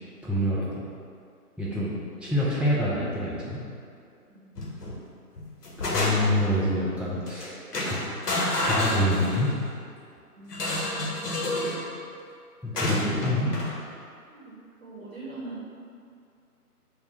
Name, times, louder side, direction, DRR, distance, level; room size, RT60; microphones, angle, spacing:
voice 1, 0.2-0.7 1.6-1.9 2.2-3.6 5.8-8.0 8.6-9.6 12.6-13.5, left 1 dB, 5° right, -9 dB, 0.3 m, -26 dB
sound 1, 4.6-5.0 5.4-6.5 7.3-7.4 7.7-9.6 10.5-11.8 12.8-13.7, left 1 dB, 75° left, 0.8 m, -29 dB
voice 2, 10.4-11.5 14.3-15.6, right 1 dB, 55° right, -7 dB, 0.7 m, -42 dB
3.5 x 2.1 x 2.8 m, 2.3 s
figure-of-eight pair, 165°, 47 cm